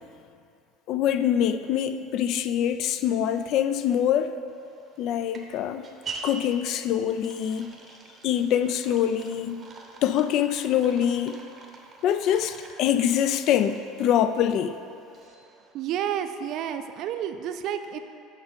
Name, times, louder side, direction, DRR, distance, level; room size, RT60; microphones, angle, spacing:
voice 1, 0.9-4.3 5.0-5.9 6.2-7.7 8.2-9.6 10.0-11.4 12.0-14.8, left 10 dB, 55° left, 0.3 m, -24 dB
sound 1, 4.5-15.7, right 4 dB, 30° right, 0.7 m, -45 dB
voice 2, 15.7-18.0, right 9 dB, 55° right, 0.4 m, -30 dB
6.4 x 4.9 x 5.2 m
cardioid pair, 130°, 0 cm